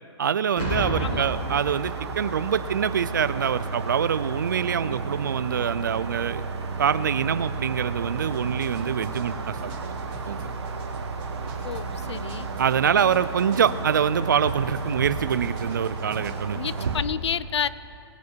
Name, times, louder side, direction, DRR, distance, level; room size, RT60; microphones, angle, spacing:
voice 1, 0.2-6.4 6.8-10.5 12.6-17.0, right 8 dB, 45° right, 15 dB, 0.4 m, -25 dB
Boom, 0.6-2.3 3.2-3.5, equal, 25° left, 3.0 m, -30 dB
sound 1, 0.9-17.0, right 4 dB, 75° right, 1.5 m, -33 dB
sound 2, 8.2-14.1 14.5-16.9, right 4 dB, 20° right, 1.7 m, -44 dB
voice 2, 11.6-12.5 16.5-17.7, left 8 dB, 80° left, 17 dB, 0.5 m, -30 dB
20.5 x 7.2 x 4.6 m, 2.7 s
hypercardioid pair, 180°, 14 cm